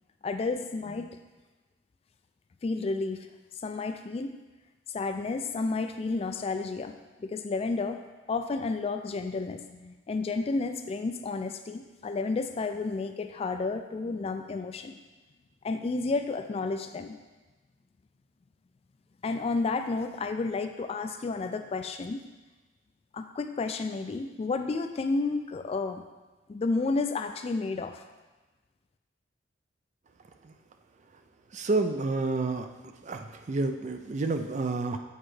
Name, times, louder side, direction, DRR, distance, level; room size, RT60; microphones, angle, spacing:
voice 1, 0.2-1.1 2.6-3.3 3.6-4.4 4.9-8.0 8.3-15.0 15.6-17.2 19.2-22.2 23.1-26.0 26.5-28.0, left 3 dB, 30° left, 7 dB, 0.3 m, -31 dB
voice 2, 31.5-32.7 33.0-35.0, right 3 dB, 40° right, 6 dB, 0.4 m, -29 dB
8.2 x 4.4 x 3.2 m, 1.2 s
head